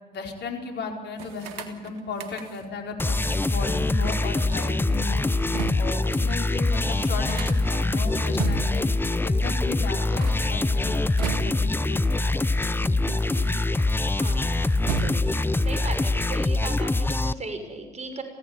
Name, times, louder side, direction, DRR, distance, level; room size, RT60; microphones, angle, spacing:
voice 1, 0.1-5.3 5.7-8.9 9.2-11.0 11.4-12.8 13.3-13.5 15.3-15.5, left 4 dB, 60° left, 2 dB, 4.9 m, -35 dB
sound 1, 1.2-2.8 4.1-6.0 6.4-6.5 6.7-8.9 10.0-11.8 12.6-13.9 14.2-15.5, right 7 dB, 85° right, 1.8 m, -37 dB
sound 2, 3.0-17.3, left 2 dB, 10° left, 0.9 m, -24 dB
voice 2, 8.0-8.4 14.1-18.2, right 3 dB, 35° right, 6 dB, 6.3 m, -38 dB
24.0 x 16.0 x 9.7 m, 1.2 s
hypercardioid pair, 60°, 21 cm